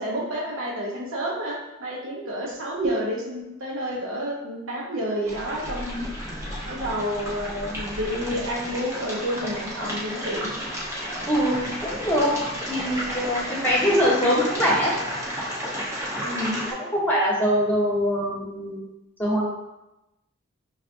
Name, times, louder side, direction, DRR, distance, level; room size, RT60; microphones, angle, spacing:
voice 1, 0.0-6.1 6.7-10.5 13.8-14.0 16.2-16.6, equal, 60° right, -2 dB, 0.8 m, -30 dB
sound 1, 5.3-16.7, equal, 15° right, 0.7 m, -32 dB
voice 2, 11.3-12.3 12.7-14.9 16.8-18.8 19.2-19.5, equal, 10° left, -8 dB, 1.1 m, -23 dB
5.6 x 2.4 x 2.5 m, 0.97 s
head